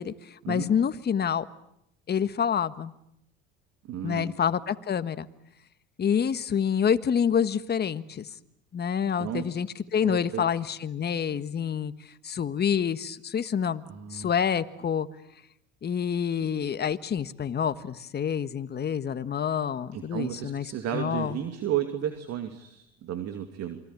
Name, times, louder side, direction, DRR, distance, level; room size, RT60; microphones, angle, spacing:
voice 1, 0.0-1.4 2.1-2.9 4.0-5.3 6.0-8.3 8.7-13.8 14.1-15.1 15.8-20.7 20.9-21.4, left 7 dB, 30° left, 12 dB, 1.5 m, -27 dB
voice 2, 3.8-4.3 9.2-9.4 10.0-10.4 13.9-14.3 19.9-23.8, right 10 dB, 55° right, 7 dB, 2.6 m, -33 dB
28.5 x 23.0 x 8.5 m, 0.79 s
hypercardioid pair, 80°, 31 cm